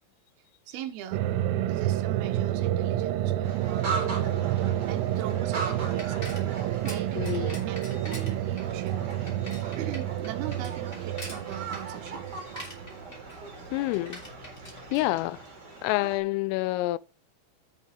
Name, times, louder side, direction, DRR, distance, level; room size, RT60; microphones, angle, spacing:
voice 1, 0.7-1.2 1.7-6.2 6.5-9.0 9.8-12.3, right 10 dB, 70° right, 2.4 m, -40 dB
sound 1, 1.1-13.2, right 12 dB, 90° right, 3.4 m, -29 dB
sound 2, 3.4-16.2, right 3 dB, 30° right, 2.3 m, -40 dB
Bicycle, 5.0-15.8, equal, 20° left, 2.1 m, -46 dB
voice 2, 7.2-7.6 13.7-14.2 14.9-15.4 15.8-17.0, left 18 dB, 85° left, 3.1 m, -28 dB
8.0 x 7.2 x 5.1 m
omnidirectional pair, 5.9 m